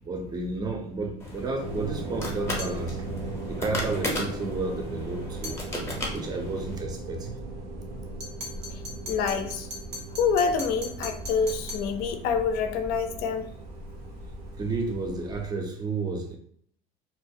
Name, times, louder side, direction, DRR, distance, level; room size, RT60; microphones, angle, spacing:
voice 1, 0.0-3.1 3.5-5.6 6.1-7.4 14.6-16.4, right 3 dB, 20° right, 3 dB, 0.5 m, -32 dB
sound 1, 1.2-6.8, left 1 dB, 15° left, 0.7 m, -35 dB
sound 2, 1.6-15.5, right 2 dB, 65° right, 0.6 m, -38 dB
sound 3, 2.6-2.8 5.4-5.6 8.2-11.9, left 1 dB, 80° right, 1.0 m, -39 dB
voice 2, 9.1-9.7 10.2-13.5, left 6 dB, 60° left, 8 dB, 0.4 m, -26 dB
2.3 x 2.0 x 2.6 m, 0.62 s
supercardioid pair, 115°, 18 cm